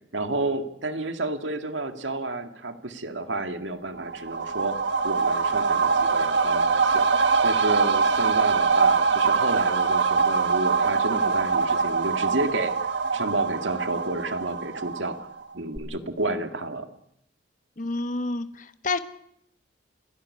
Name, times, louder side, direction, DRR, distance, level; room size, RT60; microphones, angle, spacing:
voice 1, 0.1-4.8 5.0-7.0 7.4-12.7 13.1-15.3 15.5-16.9, right 2 dB, 85° right, 7 dB, 2.0 m, -30 dB
sound 1, 4.0-15.4 15.8-15.9, right 5 dB, 70° right, 1.6 m, -23 dB
voice 2, 17.8-19.0, left 3 dB, 45° left, 10 dB, 1.1 m, -29 dB
29.5 x 11.0 x 9.7 m, 0.74 s
head